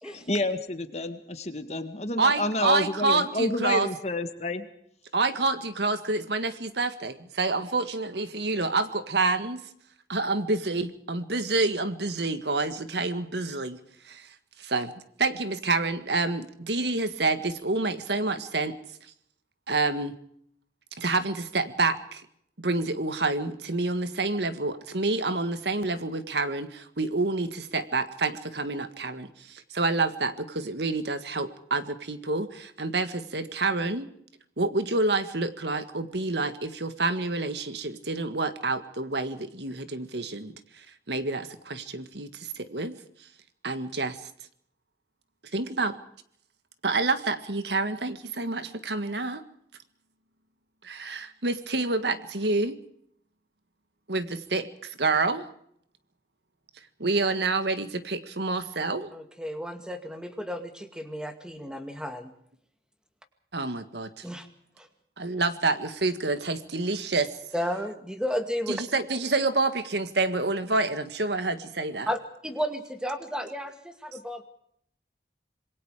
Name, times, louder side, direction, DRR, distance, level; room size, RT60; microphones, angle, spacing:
voice 1, 0.0-4.6, left 2 dB, 40° left, 9 dB, 2.0 m, -29 dB
voice 2, 2.2-3.9 5.1-9.7 10.1-13.8 14.0-14.9 15.2-18.8 19.7-20.1 21.0-22.3 22.6-34.1 34.6-43.0 43.6-44.2 45.5-46.0 46.8-49.4 50.8-52.8 54.1-55.5 57.0-59.1 63.5-64.2 65.2-67.3 68.7-72.1, right 3 dB, 70° right, 11 dB, 1.8 m, -28 dB
voice 3, 59.1-62.3 64.2-64.5 64.8-64.9 67.5-68.8 72.1-72.2 72.4-73.7 74.0-74.4, equal, 5° right, 7 dB, 2.2 m, -32 dB
26.5 x 22.0 x 5.0 m, 0.67 s
head